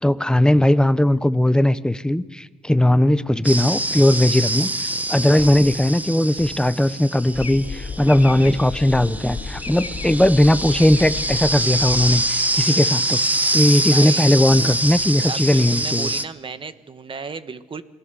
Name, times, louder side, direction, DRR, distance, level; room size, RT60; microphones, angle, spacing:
voice 1, 0.0-13.2 13.5-16.1, left 1 dB, 5° left, 13 dB, 1.0 m, -18 dB
sound 1, 3.4-16.2, right 1 dB, 10° right, 1.2 m, -25 dB
sound 2, 7.3-12.7, left 4 dB, 45° left, 2.5 m, -33 dB
voice 2, 13.9-14.3 15.2-17.8, right 5 dB, 35° right, 11 dB, 1.4 m, -34 dB
28.0 x 20.0 x 7.0 m, 1.2 s
cardioid pair, 85°, 15 cm